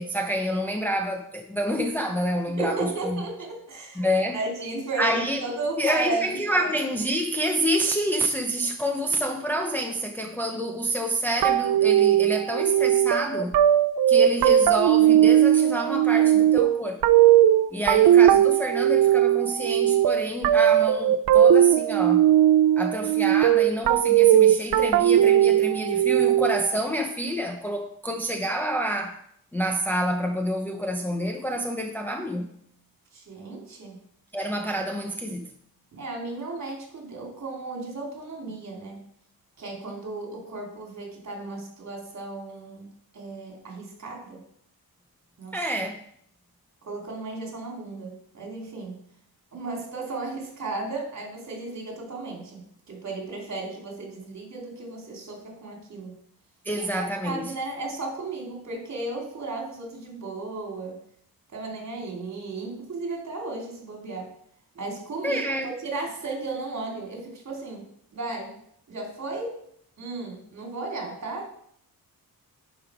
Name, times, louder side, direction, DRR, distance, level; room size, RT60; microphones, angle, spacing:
voice 1, 0.0-3.2 4.0-4.4 5.0-5.4 5.8-13.6 14.1-17.0 17.7-22.3 22.8-29.2 29.5-32.5 34.3-35.5 45.5-46.0 56.6-57.5 65.2-65.7, equal, 5° left, 0.6 m, -28 dB
voice 2, 2.6-4.1 4.3-6.7 17.7-17.9 33.1-34.0 35.9-39.0 39.6-42.9 43.1-44.4 45.4-45.6 46.9-49.0 49.5-56.1 56.8-61.0 61.5-64.3 64.7-67.8 68.1-68.6 68.9-69.6 70.0-71.5, right 3 dB, 50° right, 2.8 m, -34 dB
sound 1, 11.4-26.8, right 11 dB, 80° right, 0.6 m, -18 dB
10.5 x 5.2 x 4.9 m
wide cardioid pair, 155°, 36 cm